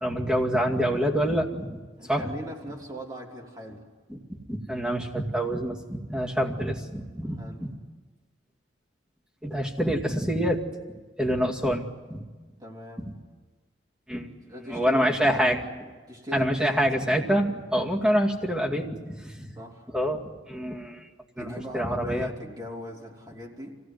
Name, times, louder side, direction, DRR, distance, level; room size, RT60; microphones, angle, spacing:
voice 1, 0.0-1.8 2.1-2.3 4.1-7.7 9.4-10.6 11.2-11.8 12.1-12.2 13.0-13.1 14.1-14.3 14.7-15.6 16.3-19.5 19.9-21.0 21.4-21.5 21.7-22.3, equal, 5° right, -2 dB, 2.3 m, -26 dB
voice 2, 2.0-3.8 7.2-7.7 11.4-11.5 12.6-13.1 14.5-15.7 16.1-16.8 19.5-19.9 21.4-23.8, left 1 dB, 20° right, -2 dB, 3.4 m, -39 dB
25.0 x 17.0 x 9.5 m, 1.4 s
head